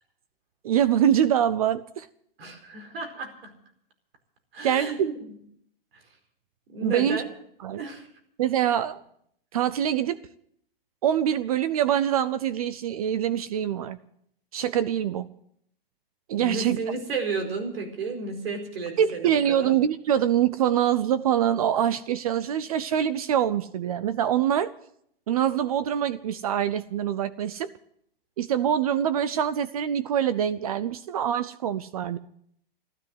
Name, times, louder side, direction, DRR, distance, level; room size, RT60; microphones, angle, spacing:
voice 1, 0.6-2.1 4.6-5.1 6.8-7.2 7.6-7.8 8.4-9.0 9.5-10.2 11.0-14.0 14.5-15.3 16.3-16.8 19.0-24.7 25.3-27.7 28.4-32.2, right 10 dB, 40° right, 15 dB, 0.6 m, -24 dB
voice 2, 2.4-3.5 4.5-5.4 5.9-6.0 6.7-7.3 7.8-8.1 16.4-19.7, right 3 dB, 75° right, 4 dB, 4.6 m, -33 dB
14.0 x 12.5 x 7.8 m, 0.69 s
hypercardioid pair, 170°, 29 cm